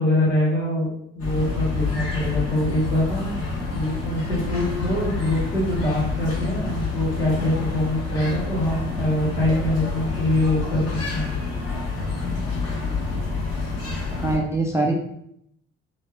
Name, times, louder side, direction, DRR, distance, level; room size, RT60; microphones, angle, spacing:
voice 1, 0.0-3.3 3.7-10.8 11.1-11.3, left 1 dB, 85° left, -10 dB, 1.2 m, -24 dB
sound 1, 1.2-14.4, left 3 dB, 40° left, 1.1 m, -28 dB
voice 2, 14.1-14.9, right 2 dB, 10° right, 0 dB, 0.3 m, -23 dB
3.1 x 2.1 x 2.2 m, 0.73 s
figure-of-eight pair, 45°, 36 cm